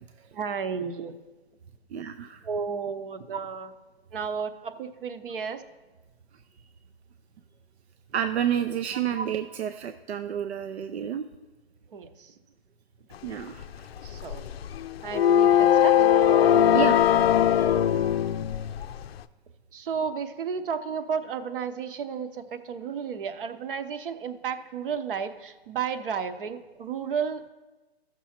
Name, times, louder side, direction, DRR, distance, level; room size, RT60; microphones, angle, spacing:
voice 1, 0.3-1.1 2.4-3.7 4.1-5.6 11.9-12.3 14.0-14.5 15.0-15.9 19.7-27.5, right 6 dB, 55° right, 10 dB, 0.9 m, -32 dB
voice 2, 1.9-2.4 8.1-11.3 13.2-13.7 16.7-17.1 17.6-17.7, right 9 dB, 80° right, 8 dB, 0.7 m, -29 dB
sound 1, 13.6-19.2, left 10 dB, 70° left, 0.5 m, -21 dB
14.0 x 6.2 x 4.3 m, 1.2 s
hypercardioid pair, 155°, 32 cm